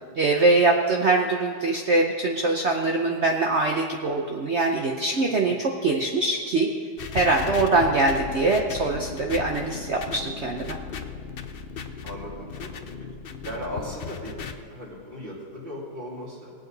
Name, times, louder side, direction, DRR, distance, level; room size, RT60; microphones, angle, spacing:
voice 1, 0.1-6.7 7.1-10.8, right 3 dB, 50° right, 1 dB, 0.8 m, -23 dB
sound 1, 7.0-14.5, left 6 dB, 85° left, 0.5 m, -36 dB
voice 2, 12.0-13.1 13.4-16.5, equal, 30° right, -5 dB, 3.0 m, -37 dB
19.0 x 8.8 x 4.0 m, 2.2 s
omnidirectional pair, 1.9 m